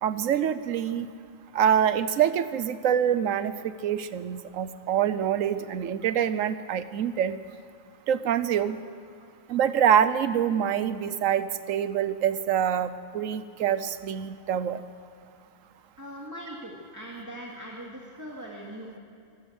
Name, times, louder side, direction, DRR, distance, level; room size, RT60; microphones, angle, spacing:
voice 1, 0.0-1.1 1.5-3.5 3.8-7.4 8.1-8.8 9.5-14.8, right 9 dB, 85° right, 13 dB, 1.1 m, -25 dB
voice 2, 16.0-19.0, equal, 15° right, -3 dB, 2.3 m, -40 dB
24.0 x 14.0 x 8.1 m, 2.5 s
omnidirectional pair, 1.3 m